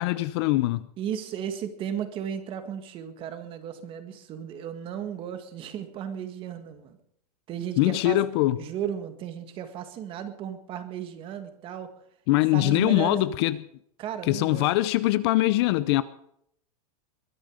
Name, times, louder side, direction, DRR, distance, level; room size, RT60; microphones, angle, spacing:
voice 1, 0.0-0.9 7.8-8.6 12.3-13.6 14.3-16.0, left 17 dB, 40° left, 0.6 m, -22 dB
voice 2, 1.0-7.0 7.5-8.2 8.6-11.9 12.5-13.3 14.0-14.7, right 9 dB, 25° right, 1.8 m, -35 dB
21.5 x 10.5 x 5.0 m
supercardioid pair, 160°, 20 cm